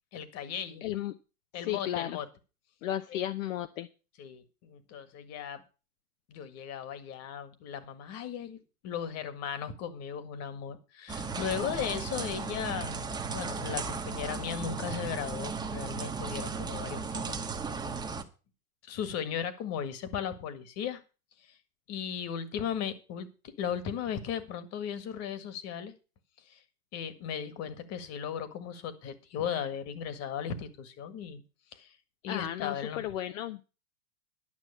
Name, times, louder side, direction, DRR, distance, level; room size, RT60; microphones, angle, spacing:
voice 1, 0.1-0.8 1.5-2.3 3.1-3.2 4.2-5.6 6.3-13.0 13.3-17.4 18.8-21.0 21.4-21.6 21.9-23.3 23.6-25.9 26.5-26.6 26.9-31.4 31.7-31.9 32.2-33.1, left 8 dB, 35° left, 12 dB, 1.8 m, -36 dB
voice 2, 0.8-1.1 1.5-2.2 2.8-3.9 32.2-33.6, left 12 dB, 60° left, 9 dB, 0.9 m, -34 dB
courtyard rain, 11.1-18.2, right 4 dB, 10° right, 1.1 m, -36 dB
11.5 x 6.0 x 8.3 m, 0.33 s
hypercardioid pair, 130°, 44 cm